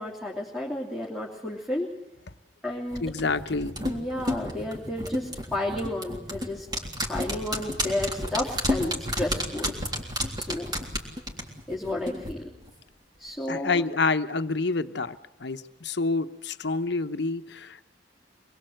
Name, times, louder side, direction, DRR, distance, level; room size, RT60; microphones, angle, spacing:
voice 1, 0.0-1.9 2.6-3.0 3.8-6.7 7.1-9.9 10.3-10.7 11.7-12.4 13.2-13.8, left 1 dB, ahead, -3 dB, 2.8 m, -32 dB
sound 1, 2.9-12.3 12.6-12.7, equal, 25° right, 3.6 m, -31 dB
voice 2, 3.0-3.8 13.5-17.8, left 3 dB, 65° left, 10 dB, 1.0 m, -28 dB
24.5 x 21.5 x 7.8 m, 0.83 s
head